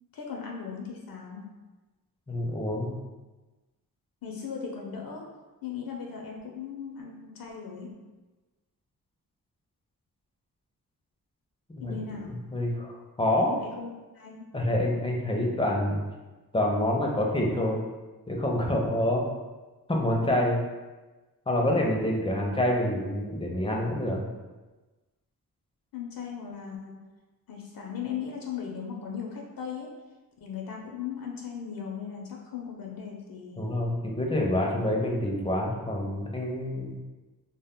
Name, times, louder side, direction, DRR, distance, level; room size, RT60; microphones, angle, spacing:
voice 1, 0.1-1.5 4.2-5.3 5.6-8.0 11.8-12.4 13.4-13.9 14.1-14.5 25.9-27.0 27.5-30.0 30.4-33.7, left 7 dB, 65° left, 0 dB, 0.5 m, -38 dB
voice 2, 2.3-3.0 11.7-13.6 14.5-16.0 16.5-17.8 18.3-19.3 19.9-20.6 21.5-24.3 33.6-37.0, left 1 dB, 15° left, -1 dB, 0.5 m, -27 dB
2.2 x 2.0 x 3.5 m, 1.2 s
cardioid pair, 80°, 37 cm